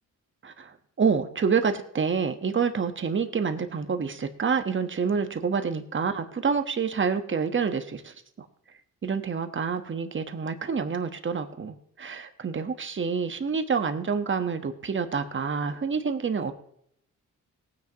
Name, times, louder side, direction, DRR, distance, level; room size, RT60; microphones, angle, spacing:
voice 1, 0.4-8.1 9.0-16.5, right 5 dB, 40° right, 8 dB, 1.3 m, -27 dB
18.5 x 9.7 x 3.0 m, 0.71 s
cardioid pair, 90°, 31 cm